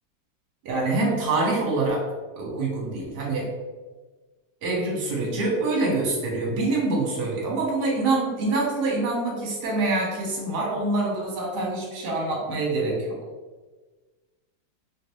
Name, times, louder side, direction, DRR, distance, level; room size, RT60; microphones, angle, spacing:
voice 1, 0.6-2.0 2.4-3.5 4.6-13.2, right 2 dB, 60° right, -3 dB, 1.4 m, -25 dB
3.3 x 2.6 x 3.0 m, 1.3 s
omnidirectional pair, 2.2 m